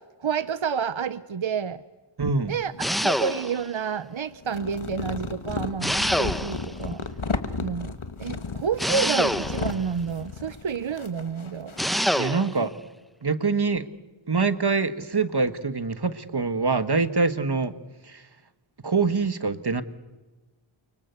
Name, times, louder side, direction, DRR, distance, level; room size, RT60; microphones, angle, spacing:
voice 1, 0.2-1.8 2.5-2.7 3.0-7.0 7.6-7.9 8.2-11.8, right 6 dB, 70° right, 14 dB, 0.8 m, -29 dB
voice 2, 2.2-2.5 12.1-12.7 13.2-13.9 14.3-17.7 18.1-18.2 18.8-19.8, right 4 dB, 50° right, 12 dB, 1.5 m, -24 dB
sound 1, 2.7-3.6 4.3-12.1, left 4 dB, 75° left, 1.6 m, -34 dB
sound 2, 2.8-3.7 5.8-6.8 8.8-9.8 11.8-12.6, equal, ahead, 1.0 m, -26 dB
29.5 x 24.5 x 8.2 m, 1.2 s
wide cardioid pair, 40°, 49 cm